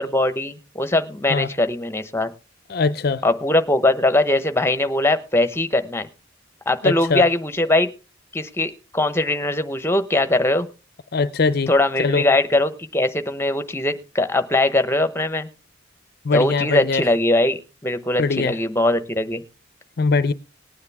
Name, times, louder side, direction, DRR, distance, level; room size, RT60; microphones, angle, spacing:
voice 1, 0.0-2.3 3.2-6.1 6.7-7.9 8.3-10.7 11.7-15.5 16.3-19.4, left 2 dB, 15° left, 1.0 m, -21 dB
voice 2, 2.7-3.2 6.8-7.2 11.1-11.7 12.0-12.2 16.2-17.0 18.2-18.6 20.0-20.3, left 4 dB, 55° left, 0.5 m, -21 dB
19.0 x 9.7 x 3.5 m
head